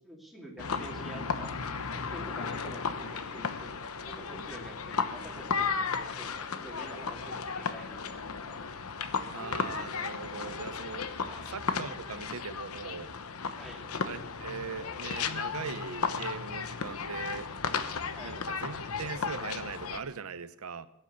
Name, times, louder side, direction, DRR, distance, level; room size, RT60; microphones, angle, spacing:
voice 1, 0.0-1.5 1.9-3.7 4.1-8.0 8.4-8.6 11.3-11.5 13.5-13.9 18.1-18.4, right 1 dB, ahead, -1 dB, 2.8 m, -48 dB
sound 1, 0.6-20.0, left 5 dB, 85° left, 1.0 m, -35 dB
voice 2, 9.3-11.1 11.5-13.1 14.0-17.5 18.2-20.9, right 5 dB, 90° right, 14 dB, 0.8 m, -40 dB
17.0 x 9.0 x 7.0 m, 0.83 s
head